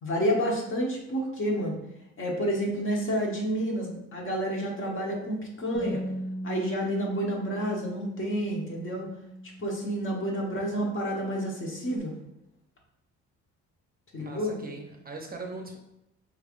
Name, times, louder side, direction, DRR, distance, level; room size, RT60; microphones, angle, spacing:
voice 1, 0.0-1.7 2.2-6.0 6.4-9.1 9.6-12.1 14.1-14.6, equal, 45° left, -1 dB, 1.2 m, -29 dB
Bass guitar, 5.7-12.0, equal, 10° right, 1.5 m, -40 dB
voice 2, 14.2-15.8, right 3 dB, 30° right, 2 dB, 0.6 m, -40 dB
4.9 x 3.3 x 2.5 m, 0.87 s
cardioid pair, 90°, 30 cm